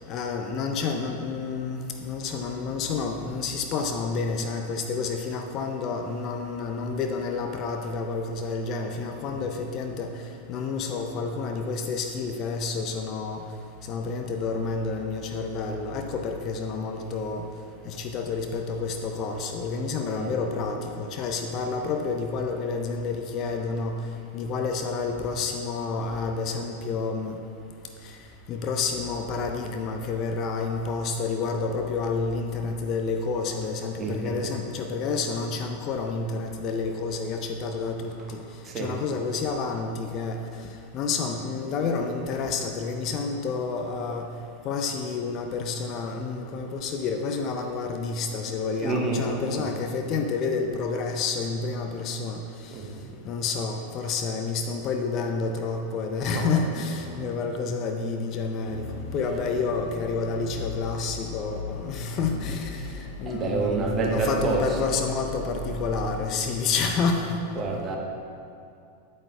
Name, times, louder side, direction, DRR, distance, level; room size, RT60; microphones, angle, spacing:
voice 1, 0.1-10.1 10.5-13.4 13.9-17.4 17.9-24.0 24.3-27.4 28.0-28.2 28.5-38.4 38.8-44.3 44.6-52.8 53.2-58.9 59.1-67.4, left 4 dB, 35° left, 4 dB, 0.5 m, -29 dB
voice 2, 34.0-34.5 38.6-39.0 48.6-49.7 52.7-52.8 56.2-57.3 62.5-62.6 63.3-64.8 67.5-68.0, right 3 dB, 25° right, -1 dB, 1.2 m, -29 dB
sound 1, 58.6-66.8, left 2 dB, 65° left, 1.5 m, -38 dB
8.7 x 8.5 x 2.3 m, 2.5 s
figure-of-eight pair, 90°, 0 cm